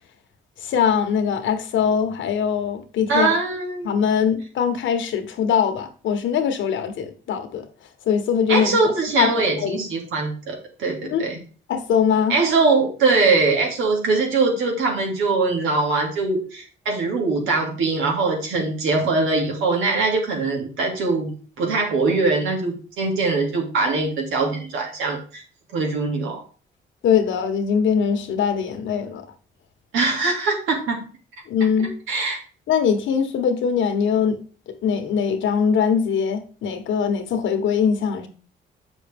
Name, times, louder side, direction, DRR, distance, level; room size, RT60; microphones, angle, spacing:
voice 1, 0.6-3.3 3.8-7.6 8.0-9.8 11.0-11.2 11.7-12.4 27.0-29.2 31.5-31.9 32.7-34.4 34.8-38.3, left 7 dB, 75° left, 1.3 m, -22 dB
voice 2, 3.1-3.9 8.5-11.4 12.3-25.4 25.7-26.4 29.9-31.1 31.8-32.4, right 3 dB, 85° right, 2.5 m, -22 dB
7.5 x 6.3 x 3.5 m
cardioid pair, 90°, 20 cm